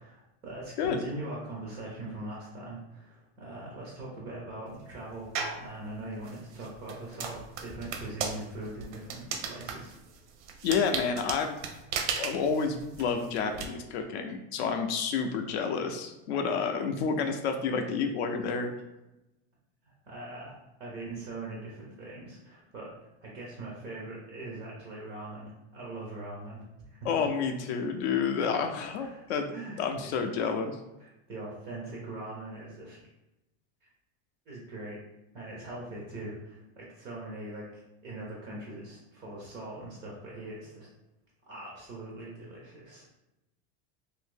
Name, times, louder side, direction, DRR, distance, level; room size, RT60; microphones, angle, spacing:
voice 1, 0.0-5.3 5.6-9.9 20.1-26.6 26.9-27.1 27.8-28.2 28.6-30.1 31.0-33.0 33.8-33.9 34.5-35.0 35.3-40.9 41.5-43.1, right 2 dB, 15° right, -3 dB, 0.3 m, -42 dB
sound 1, 5.3-5.7 6.2-13.7, right 6 dB, 85° right, 0.6 m, -36 dB
voice 2, 10.6-11.6 12.1-18.7 27.0-29.5 29.8-30.8, left 5 dB, 70° left, 5 dB, 0.5 m, -29 dB
2.7 x 2.6 x 3.5 m, 0.93 s
supercardioid pair, 175°, 34 cm